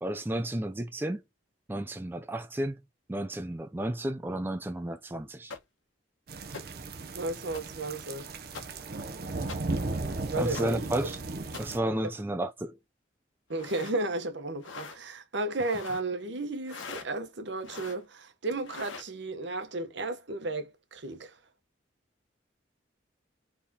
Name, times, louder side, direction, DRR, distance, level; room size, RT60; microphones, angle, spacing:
voice 1, 0.0-1.2 1.7-2.8 3.1-5.6 10.4-11.2 11.6-12.8, right 1 dB, 10° right, 0.3 m, -32 dB
sound 1, 5.5-5.6 6.5-6.6 7.5-7.6 8.5-8.6 9.5-9.6 10.5-10.6 11.5-11.6 13.5-14.0 14.6-15.0 15.5-16.0 16.6-17.1 17.6-18.0 18.6-19.1, left 5 dB, 85° left, 1.2 m, -42 dB
sound 2, 6.3-11.8, right 3 dB, 50° right, 0.6 m, -36 dB
voice 2, 7.1-8.3 10.3-10.8 13.5-21.3, right 2 dB, 70° right, 1.0 m, -33 dB
4.3 x 3.5 x 2.8 m
head